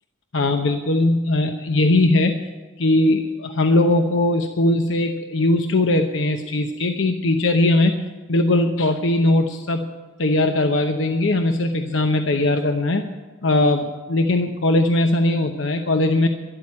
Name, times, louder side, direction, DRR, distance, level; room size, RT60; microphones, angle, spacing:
voice 1, 0.3-2.4 2.8-8.0 8.3-9.9 10.2-13.1 13.4-16.3, left 2 dB, 75° left, 5 dB, 0.8 m, -19 dB
12.5 x 11.0 x 8.6 m, 1.3 s
head